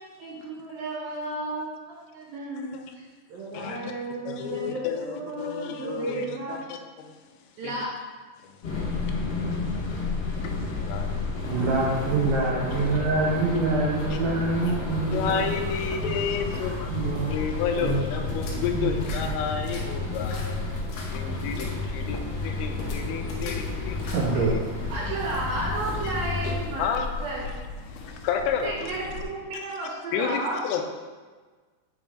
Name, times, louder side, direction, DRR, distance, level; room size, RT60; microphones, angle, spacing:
voice 1, 0.2-3.0 3.3-6.7 7.6-7.9 13.1-13.3 14.6-14.7 24.9-26.9 27.2-27.5 28.1-28.2 28.6-30.6, right 2 dB, 70° right, -3 dB, 2.4 m, -33 dB
voice 2, 3.5-3.9 4.3-7.1 10.4-10.5 10.8-11.1 12.3-12.4 12.7-12.9 14.1-14.2 15.1-16.9 17.3-20.6 21.1-24.6 26.0-26.1 26.8-27.1 28.1-28.9 29.5-29.7 30.1-30.8, left 6 dB, 85° left, 4 dB, 2.9 m, -31 dB
sound 1, 8.6-26.8, left 3 dB, 55° left, 1.8 m, -31 dB
sound 2, 11.4-29.2, left 3 dB, 70° left, 2.7 m, -41 dB
voice 3, 11.4-15.5 16.0-16.1 16.9-18.0 18.4-18.8 24.1-24.6, right 3 dB, 85° right, -4 dB, 1.9 m, -26 dB
8.3 x 5.0 x 3.5 m, 1.4 s
omnidirectional pair, 5.1 m